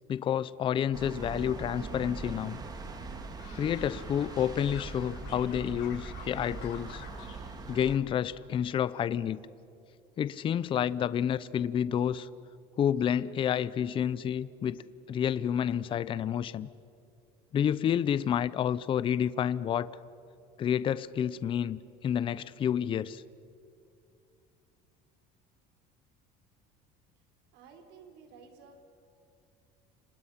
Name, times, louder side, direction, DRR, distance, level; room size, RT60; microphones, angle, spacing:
voice 1, 0.1-2.6 3.5-7.0 7.7-9.4 10.2-12.3 12.8-14.8 15.1-16.7 17.5-19.9 20.6-23.2, left 9 dB, 30° left, 17 dB, 0.6 m, -29 dB
sound 1, 0.9-8.0, right 3 dB, 20° right, 2.1 m, -41 dB
sound 2, 3.0-4.4 4.7-7.4 7.7-8.4 8.8-9.2, left 7 dB, 70° left, 7.5 m, -50 dB
voice 2, 27.5-28.8, right 5 dB, 70° right, 4 dB, 4.4 m, -53 dB
30.0 x 26.5 x 5.8 m, 2.5 s
cardioid pair, 155°, 18 cm